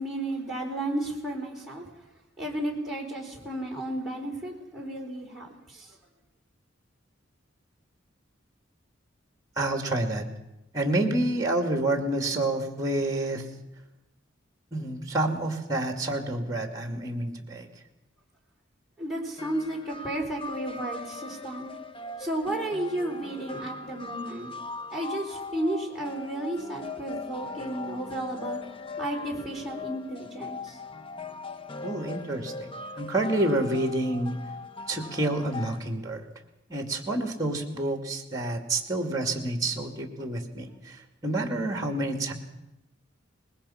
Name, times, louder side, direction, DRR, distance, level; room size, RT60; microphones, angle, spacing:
voice 1, 0.0-1.9 2.4-5.9 19.0-21.7 22.2-24.5 24.9-28.6 29.0-30.8, right 1 dB, ahead, -4 dB, 4.7 m, -33 dB
voice 2, 9.6-10.3 10.7-13.4 14.7-17.7 31.8-34.3 34.9-36.2 36.7-41.0 41.2-42.3, right 1 dB, 20° right, 5 dB, 2.4 m, -28 dB
sound 1, 19.4-35.8, left 3 dB, 25° left, 0.7 m, -40 dB
23.0 x 20.5 x 5.8 m, 0.92 s
head